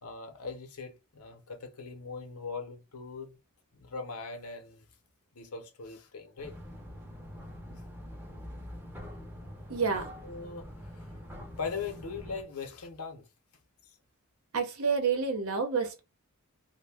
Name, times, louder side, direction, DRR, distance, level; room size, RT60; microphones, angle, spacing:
voice 1, 0.0-3.4 3.7-4.9 5.3-6.6 10.2-13.3 13.8-14.0, left 4 dB, 75° left, 0.7 m, -40 dB
sound 1, 6.4-12.4, equal, 10° right, 0.6 m, -45 dB
voice 2, 9.7-10.1 14.5-16.0, right 5 dB, 70° right, 0.8 m, -29 dB
2.6 x 2.1 x 3.3 m
head